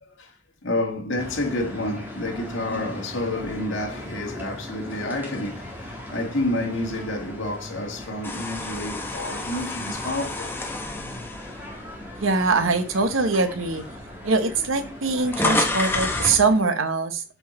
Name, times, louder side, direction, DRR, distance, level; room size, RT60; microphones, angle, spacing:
voice 1, 0.0-10.5, left 1 dB, 60° left, 2.1 m, -29 dB
sound 1, 1.2-16.6, left 1 dB, 10° right, 1.8 m, -39 dB
sound 2, 8.2-12.5 13.0-13.2 14.1-14.2 14.4-16.5, left 2 dB, 10° left, 1.0 m, -29 dB
voice 2, 12.2-13.8 14.2-17.2, right 3 dB, 75° right, 1.0 m, -22 dB
8.0 x 4.7 x 4.3 m
head